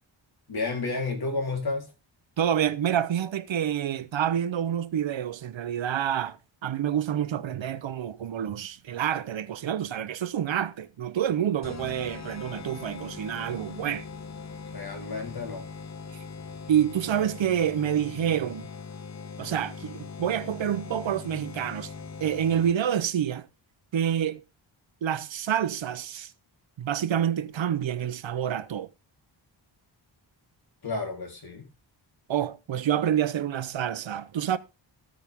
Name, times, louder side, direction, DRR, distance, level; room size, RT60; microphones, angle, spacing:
voice 1, 0.5-1.9 14.7-15.7 30.8-31.7, left 3 dB, 50° left, 3.9 m, -31 dB
voice 2, 2.4-14.1 16.7-18.7 19.4-21.9 22.2-23.5 23.9-24.4 25.0-26.3 26.8-28.9 32.3-34.6, right 9 dB, 70° right, 0.9 m, -28 dB
sound 1, 11.6-23.0, left 5 dB, 35° left, 1.0 m, -41 dB
14.0 x 8.8 x 3.6 m
wide cardioid pair, 145°, 48 cm